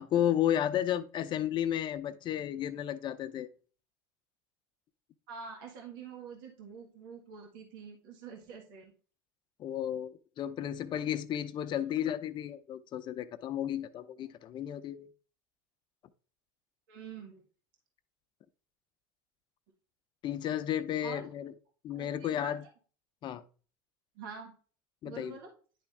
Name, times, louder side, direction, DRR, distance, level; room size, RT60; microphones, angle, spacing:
voice 1, 0.0-3.5 9.6-15.1 20.2-21.5 21.8-22.6 23.2-23.4 25.0-25.4, left 10 dB, 45° left, 0.6 m, -33 dB
voice 2, 5.3-8.9 16.9-17.4 21.0-21.3 21.9-22.5 24.1-24.5 25.0-25.5, right 6 dB, 80° right, 1.5 m, -46 dB
9.9 x 3.5 x 3.3 m
supercardioid pair, 100°, 11 cm